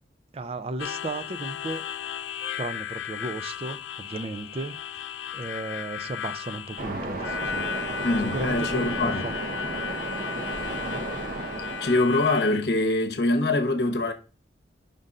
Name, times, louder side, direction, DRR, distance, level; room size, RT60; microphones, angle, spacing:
voice 1, 0.3-1.9 2.6-4.7 5.3-7.7 8.3-9.4 10.8-11.1, right 3 dB, 35° right, 0.4 m, -35 dB
Harmonica, 0.8-12.6, left 8 dB, 90° left, 0.3 m, -35 dB
Waves surf, 6.8-12.0, right 2 dB, 50° right, 0.8 m, -33 dB
voice 2, 8.0-9.2 11.8-14.1, left 2 dB, 65° left, 0.9 m, -24 dB
5.3 x 3.7 x 5.3 m
head